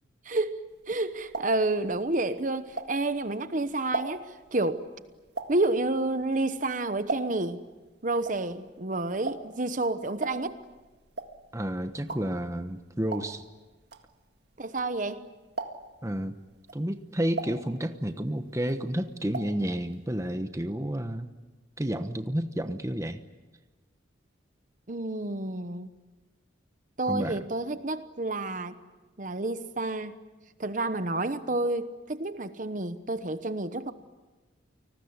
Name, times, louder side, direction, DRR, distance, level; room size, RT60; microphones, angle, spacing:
voice 1, 0.2-4.8 5.5-7.6 8.0-10.6 14.6-15.2 24.9-25.9 27.0-28.8 29.2-30.1 30.6-33.9, right 2 dB, 40° right, 11 dB, 1.0 m, -29 dB
sound 1, 0.8-3.3 3.7-7.6 7.9-15.2 15.5-16.1 16.5-18.3 18.6-19.6 19.9-20.0 20.3-20.4, right 3 dB, 55° right, 1.9 m, -38 dB
voice 2, 11.5-13.4 16.0-16.3 16.7-21.3 21.8-23.2 27.1-27.4, right 1 dB, 15° right, 8 dB, 1.0 m, -31 dB
29.5 x 19.5 x 9.6 m, 1.2 s
head